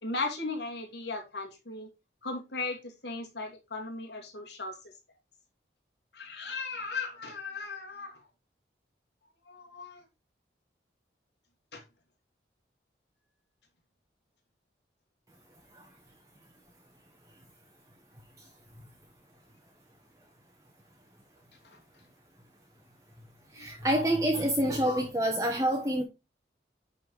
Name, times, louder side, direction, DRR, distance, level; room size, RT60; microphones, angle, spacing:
voice 1, 0.0-1.9 2.2-4.9 6.1-8.2 9.4-10.0 11.7-11.8 21.6-21.8 23.6-23.7 24.8-25.0, left 3 dB, 70° left, 2.7 m, -37 dB
voice 2, 23.5-26.0, right 1 dB, 20° right, 1.2 m, -27 dB
10.5 x 4.4 x 4.8 m
head